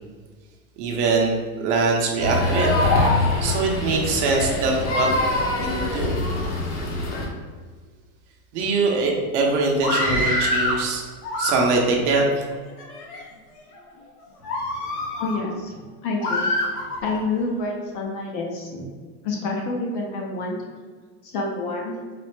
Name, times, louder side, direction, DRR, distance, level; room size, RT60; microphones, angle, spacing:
voice 1, 0.8-3.0 3.4-5.1 5.6-6.1 8.5-11.0 11.4-12.4, right 3 dB, 50° right, 0 dB, 0.7 m, -23 dB
sound 1, 2.2-7.3, left 2 dB, 55° left, 0.9 m, -23 dB
Screaming, 9.7-10.8 11.2-12.0 12.7-13.2 13.7-13.9 14.4-15.4 16.2-17.2, left 1 dB, 85° left, 0.9 m, -26 dB
voice 2, 15.2-15.7 16.0-16.5 17.0-18.8 19.2-20.6 21.2-21.9, left 3 dB, 40° left, 0 dB, 0.5 m, -28 dB
4.1 x 2.0 x 3.2 m, 1.5 s
supercardioid pair, 150°, 45 cm